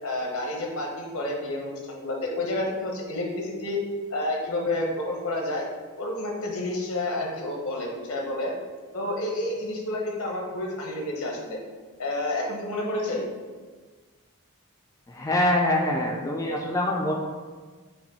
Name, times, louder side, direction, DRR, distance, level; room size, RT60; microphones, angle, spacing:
voice 1, 0.0-3.8 4.1-5.7 6.0-8.5 8.9-11.6 12.0-13.2, left 1 dB, 80° left, 0 dB, 1.0 m, -30 dB
voice 2, 15.1-17.1, left 1 dB, 15° left, -1 dB, 0.3 m, -24 dB
5.7 x 2.2 x 4.1 m, 1.4 s
head